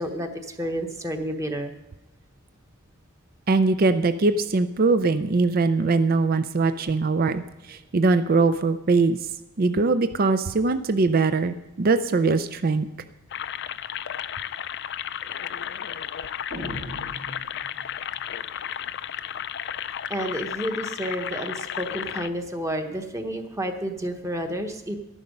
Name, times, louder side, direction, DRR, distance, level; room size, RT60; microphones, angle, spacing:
voice 1, 0.0-1.7 6.0-6.1 6.5-6.6 20.1-25.0, equal, 15° right, 5 dB, 1.0 m, -30 dB
voice 2, 3.5-9.2 9.6-12.9, right 3 dB, 45° right, 10 dB, 0.5 m, -22 dB
sound 1, 13.3-22.3, left 10 dB, 55° left, 0.4 m, -33 dB
sound 2, 16.5-18.1, equal, 70° right, 2.7 m, -38 dB
12.5 x 11.0 x 5.3 m, 1.0 s
head